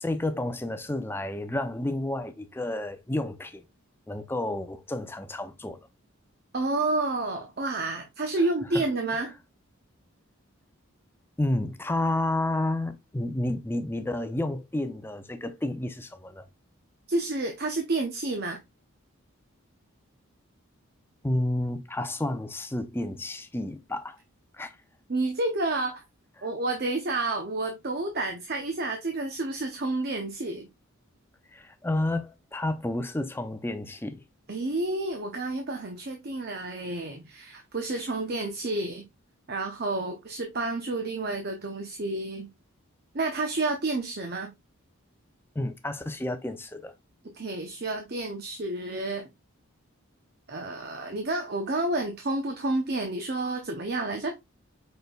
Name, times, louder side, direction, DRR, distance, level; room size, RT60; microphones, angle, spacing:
voice 1, 0.0-3.6 4.1-5.8 8.7-8.8 11.4-16.4 21.2-24.2 24.5-24.8 26.4-26.5 31.5-34.2 45.6-46.9, left 1 dB, 10° left, 0.4 m, -30 dB
voice 2, 6.5-9.3 17.1-18.6 25.1-26.0 26.4-30.7 34.5-39.0 39.5-42.5 43.1-44.5 47.3-49.3 50.5-54.3, right 2 dB, 45° right, 0.7 m, -30 dB
5.2 x 4.3 x 2.2 m
head